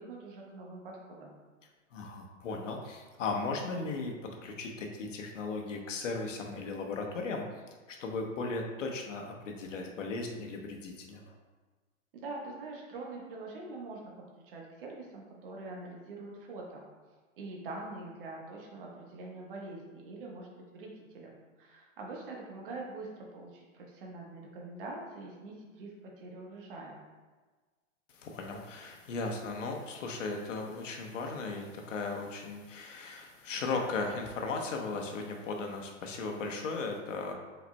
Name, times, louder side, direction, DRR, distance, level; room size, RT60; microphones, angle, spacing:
voice 1, 0.0-1.4 12.1-14.0 14.4-16.9 17.4-21.3 21.6-27.0, right 2 dB, 45° right, -2 dB, 1.2 m, -44 dB
voice 2, 1.9-4.1 4.4-7.6 7.9-11.4 28.1-37.3, left 3 dB, 70° left, 2 dB, 1.0 m, -36 dB
5.7 x 4.2 x 2.2 m, 1.3 s
hypercardioid pair, 160°, 39 cm